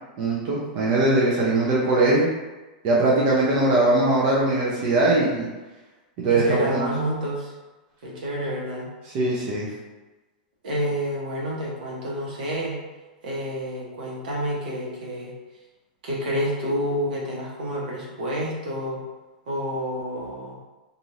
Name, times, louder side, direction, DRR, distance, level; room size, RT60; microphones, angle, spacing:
voice 1, 0.2-2.3 2.8-5.5 6.2-6.8 9.1-9.7, right 2 dB, 45° right, -5 dB, 0.7 m, -21 dB
voice 2, 6.3-7.5 8.0-8.9 10.6-12.8 13.2-15.3 16.0-19.0 19.5-20.6, equal, 75° right, -4 dB, 1.1 m, -29 dB
3.0 x 2.6 x 2.7 m, 1.2 s
hypercardioid pair, 125°, 5 cm